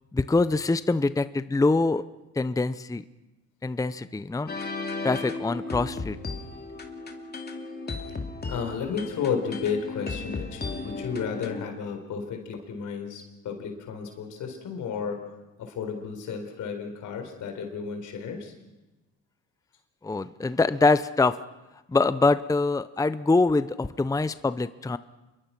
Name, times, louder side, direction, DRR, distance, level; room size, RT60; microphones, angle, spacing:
voice 1, 0.1-2.0 2.4-3.0 3.6-4.5 5.0-6.2 20.0-21.4 21.9-25.0, left 3 dB, 10° left, 14 dB, 0.7 m, -24 dB
sound 1, 4.5-11.7, left 3 dB, 35° left, 2.8 m, -35 dB
voice 2, 8.4-15.2 15.6-18.5, left 6 dB, 75° left, 5 dB, 4.5 m, -33 dB
27.0 x 22.5 x 6.0 m, 1.1 s
cardioid pair, 90°, 30 cm